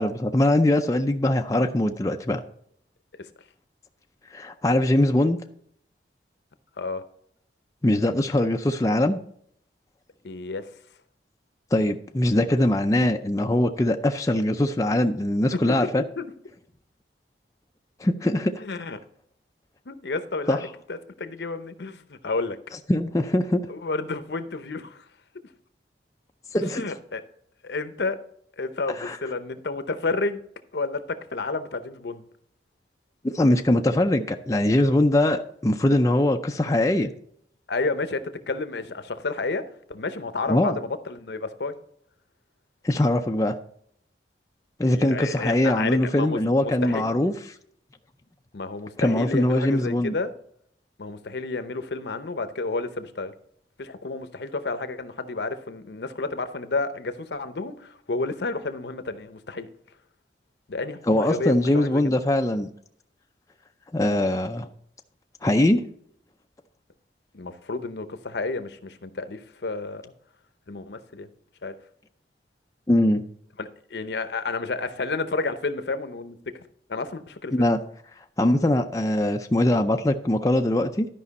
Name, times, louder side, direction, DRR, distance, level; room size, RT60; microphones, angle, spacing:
voice 1, 0.0-2.4 4.3-5.4 7.8-9.2 11.7-16.0 18.0-18.6 20.5-20.6 22.9-23.6 26.5-26.9 29.0-29.2 33.2-37.1 40.5-40.8 42.8-43.5 44.8-47.3 49.0-50.1 61.1-62.7 63.9-64.7 65.4-65.8 72.9-73.2 77.5-77.8 78.4-81.1, left 1 dB, 20° left, 0.4 m, -22 dB
voice 2, 10.2-10.6 15.7-15.8 16.2-16.3 18.6-19.0 19.9-22.6 23.7-25.0 26.7-27.2 27.6-28.2 28.6-30.4 30.7-32.3 37.7-39.6 39.9-41.7 44.9-47.1 48.5-50.3 51.0-53.3 53.8-59.7 60.7-62.1 67.3-70.1 70.7-71.3 71.6-71.7 73.6-76.4 76.9-77.7, left 3 dB, 75° left, 0.7 m, -31 dB
12.0 x 5.2 x 4.1 m
head